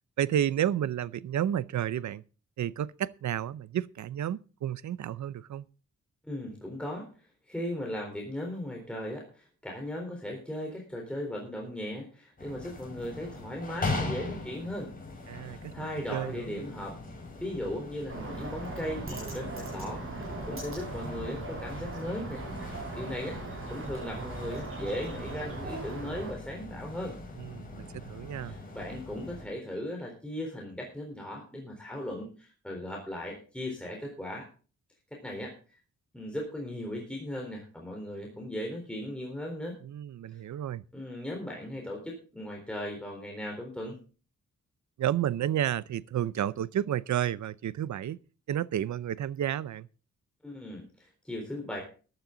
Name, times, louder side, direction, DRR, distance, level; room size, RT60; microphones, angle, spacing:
voice 1, 0.2-2.2 2.6-5.6 15.3-15.7 16.1-16.6 27.4-28.6 39.8-40.8 45.0-48.2 48.5-49.9, right 10 dB, 70° right, 0.6 m, -31 dB
voice 2, 6.2-14.9 15.4-17.0 17.4-22.4 22.9-23.4 23.7-27.2 28.3-34.5 35.1-35.5 36.1-39.8 40.3-40.4 40.9-44.0 50.4-51.8, left 1 dB, 5° left, 3.8 m, -37 dB
sound 1, 12.4-29.5, left 2 dB, 30° left, 5.5 m, -40 dB
Bird, 18.1-26.3, right 3 dB, 45° right, 6.8 m, -39 dB
14.5 x 12.0 x 3.9 m
wide cardioid pair, 115°, 30 cm